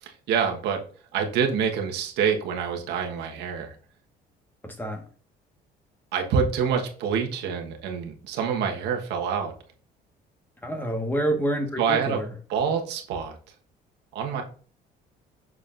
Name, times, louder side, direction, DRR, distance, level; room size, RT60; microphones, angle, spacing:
voice 1, 0.0-0.8 1.1-3.7 6.1-9.5 11.8-12.2 12.5-13.4 14.1-14.4, right 6 dB, 85° right, 3 dB, 1.3 m, -26 dB
voice 2, 4.6-5.0 10.6-12.3, right 1 dB, 10° left, 4 dB, 1.5 m, -27 dB
7.6 x 6.4 x 2.6 m, 0.43 s
cardioid pair, 110°, 17 cm